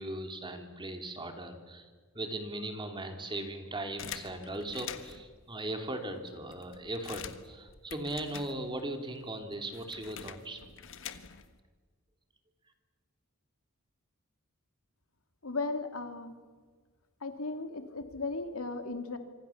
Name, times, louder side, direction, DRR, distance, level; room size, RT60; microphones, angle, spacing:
voice 1, 0.0-10.6, right 1 dB, 25° right, 5 dB, 3.0 m, -38 dB
sound 1, 4.0-5.3 6.0-6.1 6.3-9.0 9.2-11.6, left 8 dB, 65° left, 1.5 m, -46 dB
voice 2, 15.4-16.3 17.2-19.2, left 3 dB, 85° left, 7 dB, 2.5 m, -36 dB
27.0 x 25.0 x 7.2 m, 1.5 s
head